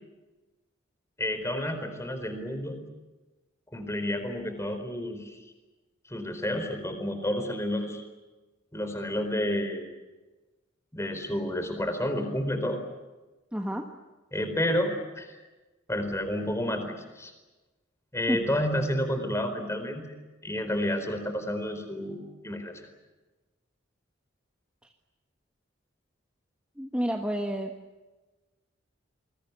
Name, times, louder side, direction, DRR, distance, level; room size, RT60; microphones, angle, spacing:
voice 1, 1.2-2.8 3.7-5.4 6.1-8.0 8.7-9.9 10.9-12.8 14.3-15.3 15.9-17.3 18.1-20.1 20.4-22.9, left 1 dB, 15° left, 8 dB, 4.3 m, -30 dB
voice 2, 13.5-13.8 18.3-18.4 26.8-27.7, equal, 5° right, 2 dB, 1.4 m, -29 dB
28.5 x 22.0 x 8.3 m, 1.1 s
head